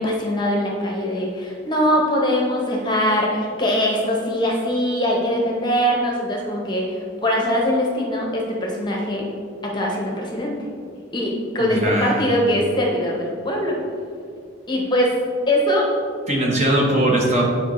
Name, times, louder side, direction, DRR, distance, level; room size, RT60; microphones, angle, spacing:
voice 1, 0.0-9.3 9.6-10.6 11.1-13.8 14.7-15.1 15.5-15.9, equal, 20° left, -1 dB, 0.8 m, -22 dB
voice 2, 11.6-12.3 16.3-17.4, right 1 dB, 35° right, -2 dB, 0.9 m, -20 dB
8.6 x 4.8 x 3.0 m, 2.3 s
head